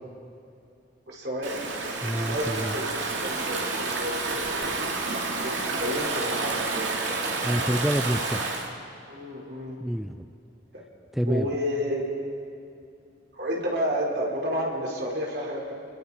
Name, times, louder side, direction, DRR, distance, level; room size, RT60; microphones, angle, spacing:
voice 1, 1.1-1.7 2.2-4.7 5.4-6.9 9.1-9.7 11.3-12.1 13.3-15.7, equal, 60° right, -2 dB, 4.8 m, -31 dB
Stream / Ocean, 1.4-8.7, right 3 dB, 85° right, 2.5 m, -29 dB
voice 2, 2.0-2.8 7.4-8.5 9.8-10.3 11.1-11.5, equal, ahead, 7 dB, 0.4 m, -28 dB
29.0 x 21.0 x 4.4 m, 2.5 s
head